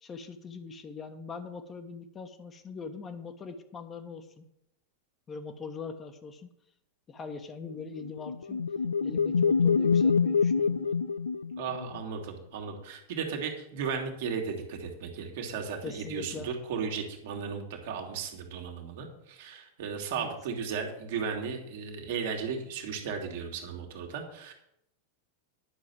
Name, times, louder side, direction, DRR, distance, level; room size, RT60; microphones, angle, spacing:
voice 1, 0.0-4.4 5.3-6.5 7.1-8.6 9.0-11.0 15.8-16.5 20.1-20.3, left 5 dB, 20° left, 7 dB, 1.2 m, -42 dB
sound 1, 8.0-12.0, left 5 dB, 70° left, 0.4 m, -26 dB
voice 2, 11.6-24.5, right 6 dB, 55° right, 2 dB, 2.1 m, -35 dB
10.0 x 6.4 x 7.5 m, 0.79 s
figure-of-eight pair, 90°, 0 cm